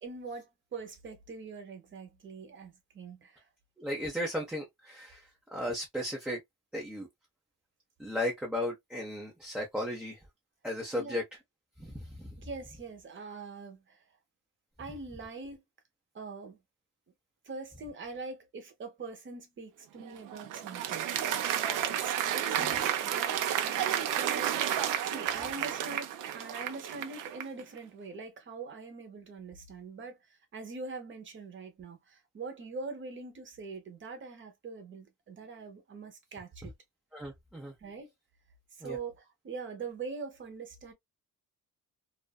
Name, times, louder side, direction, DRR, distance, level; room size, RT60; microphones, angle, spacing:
voice 1, 0.0-3.5 10.9-11.2 12.4-14.0 14.8-15.6 16.1-16.6 17.4-21.1 22.0-24.7 25.0-36.7 37.8-38.1 38.7-40.9, right 4 dB, 35° right, 0.8 m, -43 dB
voice 2, 3.8-6.4 6.7-7.1 8.0-10.2 10.6-11.2 11.8-12.3 37.1-37.7 38.8-39.0, left 1 dB, 5° right, 0.5 m, -35 dB
Applause, 20.0-27.6, right 10 dB, 60° right, 0.5 m, -31 dB
2.5 x 2.4 x 2.3 m
cardioid pair, 160°, 35 cm